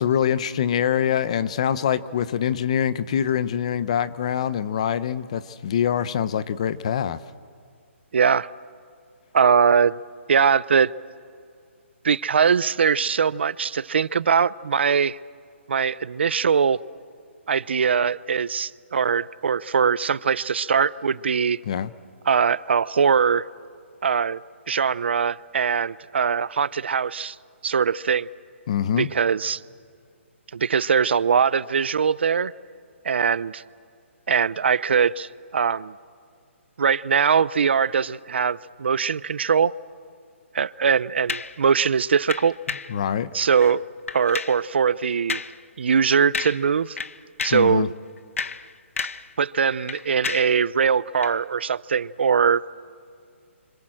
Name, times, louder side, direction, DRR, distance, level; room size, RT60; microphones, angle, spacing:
voice 1, 0.0-7.2 21.7-21.9 28.7-29.1 42.9-43.3 47.5-47.9, left 9 dB, 30° left, 15 dB, 0.7 m, -24 dB
voice 2, 8.1-8.5 9.3-10.0 10.3-10.9 12.0-15.2 15.7-16.8 17.5-21.6 22.3-23.4 24.0-24.4 24.7-27.4 27.6-28.3 29.0-29.6 30.5-32.5 33.0-33.6 34.3-35.9 36.8-39.7 40.5-42.5 43.3-43.8 44.1-45.4 45.8-47.0 47.4-47.9 49.4-52.7, right 6 dB, 55° right, 20 dB, 0.6 m, -21 dB
sound 1, 41.3-41.6 42.3-43.0 43.5-43.8 44.1-44.6 45.3-45.6 45.9-46.0 46.3-46.7 47.0-47.7 48.2-49.3 49.6-50.6 51.2-51.4, left 5 dB, 80° left, 1.1 m, -31 dB
29.0 x 26.0 x 7.7 m, 2.3 s
hypercardioid pair, 175°, 7 cm